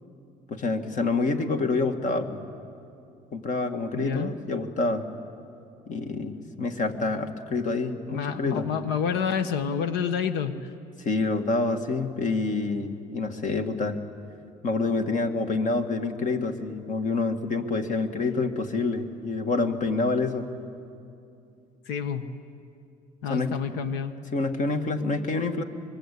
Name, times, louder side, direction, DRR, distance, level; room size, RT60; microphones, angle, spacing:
voice 1, 0.5-2.4 3.3-5.1 5.9-8.7 11.0-14.0 14.6-20.5 23.3-23.6 24.3-25.6, left 3 dB, 50° left, 6 dB, 2.0 m, -27 dB
voice 2, 3.9-4.4 8.1-10.5 21.9-22.2 23.2-24.1, left 7 dB, 90° left, 10 dB, 1.3 m, -28 dB
25.5 x 22.5 x 8.5 m, 2.6 s
cardioid pair, 110°, 17 cm